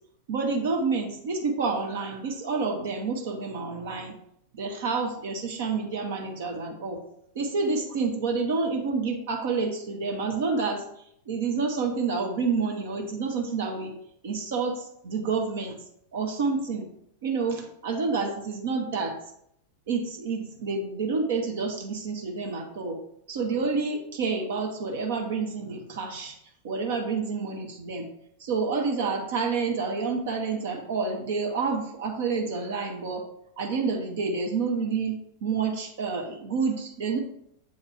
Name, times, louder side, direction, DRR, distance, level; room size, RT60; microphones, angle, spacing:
voice 1, 0.3-4.2 4.5-7.0 7.3-10.8 11.3-14.0 14.2-15.8 16.1-16.9 17.2-19.2 19.9-23.0 23.3-26.4 26.6-28.1 28.4-33.3 33.6-37.2, right 4 dB, 55° right, 2 dB, 0.9 m, -29 dB
7.7 x 4.1 x 3.5 m, 0.72 s
figure-of-eight pair, 90°, 0 cm